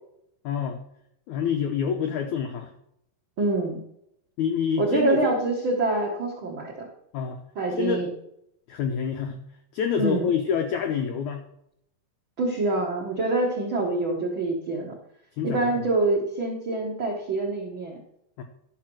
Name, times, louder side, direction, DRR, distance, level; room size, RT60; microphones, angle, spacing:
voice 1, 0.4-0.8 1.3-2.7 4.4-5.3 7.1-7.4 7.7-8.0 8.7-9.4 9.7-11.4 15.4-15.7 18.4-18.5, left 7 dB, 85° left, 5 dB, 1.7 m, -27 dB
voice 2, 3.4-3.8 4.8-6.9 7.5-8.1 10.0-10.3 12.4-14.9 15.4-18.0, right 2 dB, 70° right, -1 dB, 1.1 m, -25 dB
12.5 x 5.8 x 6.1 m, 0.77 s
omnidirectional pair, 4.5 m